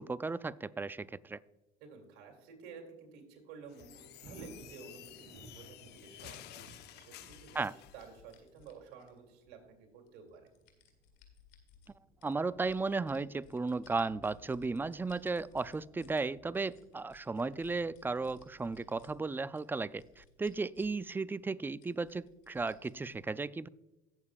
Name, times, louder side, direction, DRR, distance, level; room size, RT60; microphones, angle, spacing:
voice 1, 0.0-1.4 7.6-7.7 12.2-23.7, right 3 dB, 10° right, 18 dB, 0.3 m, -35 dB
voice 2, 1.8-6.4 6.9-10.5, right 5 dB, 75° right, 2 dB, 2.6 m, -52 dB
Thunder, 3.6-22.4 22.8-22.9, right 4 dB, 60° right, 2.9 m, -61 dB
sound 1, 3.7-8.1, left 13 dB, 60° left, 0.7 m, -52 dB
sound 2, 7.3-9.4 10.1-11.9 12.2-16.2 16.5-19.1 19.5-21.0 21.3-21.4 21.8-23.2, left 8 dB, 75° left, 1.9 m, -62 dB
17.0 x 7.1 x 2.4 m, 1.0 s
supercardioid pair, 85°, 19 cm